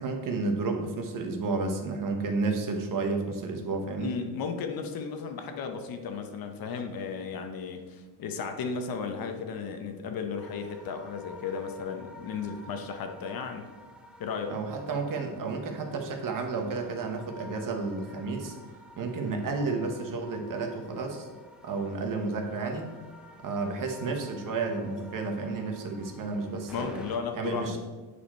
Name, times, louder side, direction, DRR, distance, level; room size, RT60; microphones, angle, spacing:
voice 1, 0.0-4.1 14.5-18.6 19.0-21.3 21.6-22.9 23.4-27.0 27.3-27.8, right 3 dB, 50° right, 4 dB, 1.2 m, -31 dB
voice 2, 4.0-13.7 14.2-14.5 26.7-27.8, left 5 dB, 55° left, 6 dB, 0.9 m, -35 dB
sound 1, 10.4-27.2, left 1 dB, ahead, 0.7 m, -51 dB
8.3 x 5.0 x 4.3 m, 1.3 s
cardioid pair, 130°, 43 cm